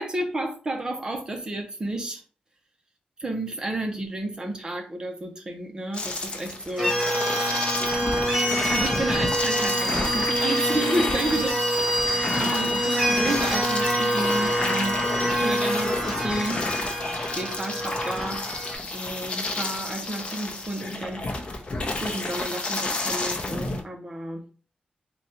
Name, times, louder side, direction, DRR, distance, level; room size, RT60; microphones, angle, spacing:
voice 1, 0.0-2.2 3.2-7.4 8.7-15.0 15.4-16.6 17.2-18.5 18.9-21.3 22.0-24.4, right 1 dB, 30° right, 0.7 m, -31 dB
sound 1, 5.9-23.8, left 2 dB, 40° left, 0.7 m, -31 dB
sound 2, 6.8-18.7, equal, ahead, 1.7 m, -26 dB
3.9 x 2.3 x 4.3 m
wide cardioid pair, 145°, 3 cm